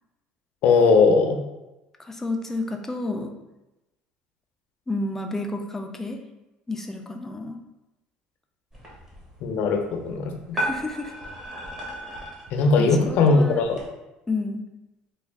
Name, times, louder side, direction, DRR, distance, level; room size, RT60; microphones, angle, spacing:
voice 1, 0.6-1.4 9.4-10.6 12.5-13.8, left 4 dB, 65° left, 3 dB, 0.5 m, -19 dB
voice 2, 2.0-3.3 4.9-6.2 6.7-7.6 10.5-11.1 12.8-13.6 14.3-14.6, left 2 dB, 10° left, 4 dB, 0.4 m, -30 dB
sound 1, 8.7-13.9, right 1 dB, 20° right, 1.0 m, -36 dB
3.4 x 2.3 x 3.4 m, 0.98 s
cardioid pair, 130°, 3 cm